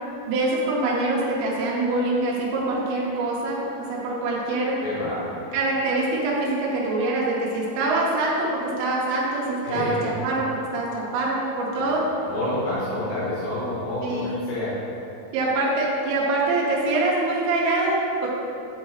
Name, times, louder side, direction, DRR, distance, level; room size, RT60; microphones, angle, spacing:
voice 1, 0.3-4.8 5.5-12.0 14.0-14.4 15.3-18.3, right 2 dB, 90° right, -5 dB, 2.7 m, -24 dB
voice 2, 4.8-5.3 9.6-10.1 11.8-11.9 12.3-14.7, left 1 dB, 75° left, -12 dB, 3.1 m, -28 dB
8.8 x 3.8 x 2.8 m, 2.9 s
omnidirectional pair, 4.3 m